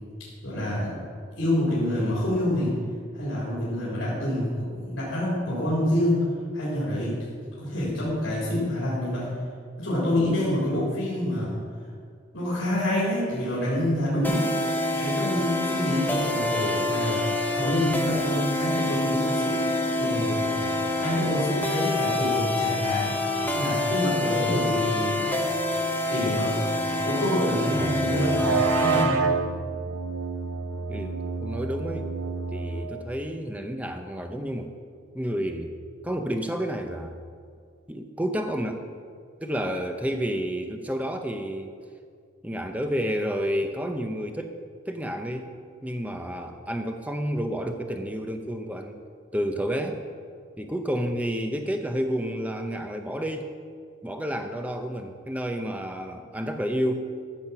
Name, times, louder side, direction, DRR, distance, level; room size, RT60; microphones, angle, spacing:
voice 1, 0.4-1.0 1.4-2.8 3.1-6.2 6.5-7.2 7.6-9.3 9.8-11.6 12.3-14.5 15.0-17.3 17.5-19.7 20.0-23.2 23.5-25.2 26.1-29.2, left 1 dB, 70° left, -8 dB, 3.8 m, -27 dB
sound 1, 14.2-29.1, left 2 dB, 10° left, 1.0 m, -27 dB
sound 2, 27.8-33.0, right 5 dB, 90° right, 0.7 m, -29 dB
voice 2, 30.9-32.1 32.5-34.7 35.1-35.7 36.0-37.2 37.9-38.8 39.4-41.7 42.4-44.5 44.9-45.5 45.8-49.0 49.3-50.0 50.6-53.5 54.0-57.1, equal, 5° right, 5 dB, 0.6 m, -30 dB
14.0 x 7.2 x 5.8 m, 2.1 s
head